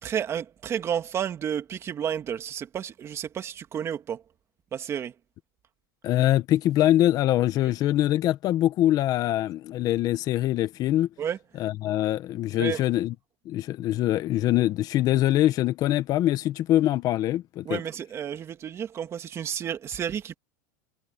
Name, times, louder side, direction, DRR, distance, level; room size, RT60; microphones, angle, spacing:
voice 1, 0.0-4.2 4.7-5.1 11.2-11.4 12.6-12.8 17.6-20.3, right 9 dB, 30° right, 2.4 m, -31 dB
voice 2, 6.0-11.1 11.5-13.1 13.4-17.8, left 13 dB, 40° left, 1.4 m, -23 dB
supercardioid pair, 135°, 10 cm